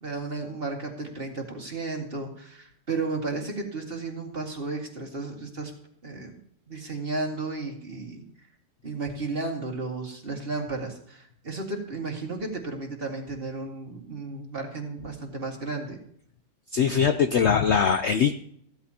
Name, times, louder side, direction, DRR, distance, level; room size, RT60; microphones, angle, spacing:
voice 1, 0.0-5.7 6.0-6.3 6.7-8.2 8.8-16.0, right 3 dB, 35° right, 1 dB, 2.2 m, -33 dB
voice 2, 16.7-18.4, left 7 dB, 75° left, 9 dB, 0.6 m, -21 dB
15.0 x 13.5 x 2.9 m, 0.67 s
omnidirectional pair, 1.9 m